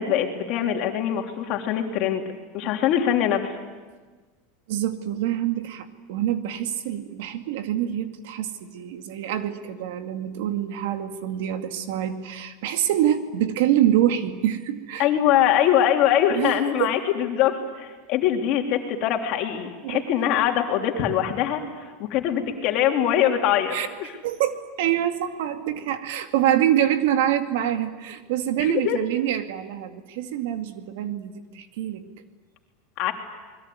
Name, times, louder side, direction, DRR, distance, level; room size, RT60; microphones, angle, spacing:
voice 1, 0.0-2.2 2.5-3.6 15.0-21.6 22.0-24.1 28.6-29.0 33.0-33.1, left 10 dB, 45° left, 3 dB, 3.4 m, -23 dB
voice 2, 4.7-15.1 16.3-16.9 19.8-20.0 23.7-23.9 24.2-32.1, right 11 dB, 70° right, 7 dB, 2.2 m, -25 dB
28.5 x 21.0 x 9.6 m, 1.4 s
supercardioid pair, 155°, 0 cm